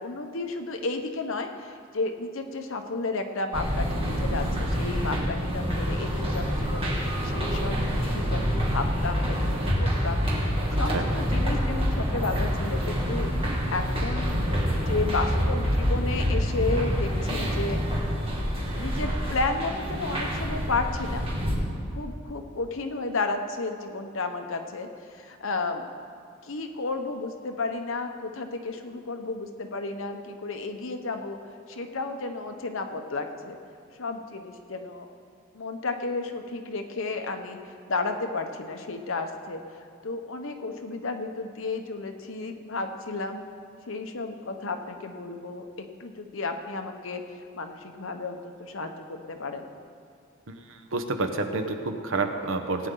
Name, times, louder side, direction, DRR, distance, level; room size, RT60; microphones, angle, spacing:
voice 1, 0.0-9.4 9.8-14.4 14.9-18.2 18.7-21.2 21.9-25.9 26.4-31.4 31.7-33.6 34.0-35.1 35.5-37.6 37.9-39.6 40.0-43.4 43.9-45.7 46.0-47.2 47.5-49.6, left 3 dB, 65° left, 5 dB, 1.0 m, -32 dB
sound 1, 3.5-21.6, equal, 25° right, 2.1 m, -27 dB
voice 2, 50.9-52.9, right 3 dB, 65° right, 6 dB, 1.0 m, -28 dB
18.0 x 9.3 x 3.9 m, 2.3 s
head